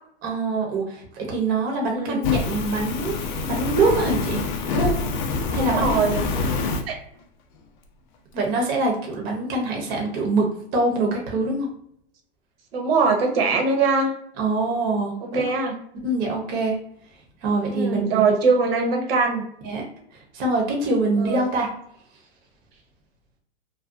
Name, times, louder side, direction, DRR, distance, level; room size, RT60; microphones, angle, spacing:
voice 1, 0.2-4.4 4.7-5.0 5.5-6.0 8.3-11.7 14.4-15.4 16.0-16.8 17.4-18.2 19.6-19.9 20.1-21.7, right 2 dB, 30° right, 0 dB, 0.6 m, -24 dB
Fire, 2.2-6.8, left 3 dB, 45° left, 0.4 m, -26 dB
voice 2, 5.6-6.2 6.9-7.0 12.7-14.1 15.2-15.7 17.7-19.4 21.2-21.4, right 4 dB, 65° right, 3 dB, 0.8 m, -22 dB
2.5 x 2.2 x 2.3 m, 0.70 s
hypercardioid pair, 135°, 32 cm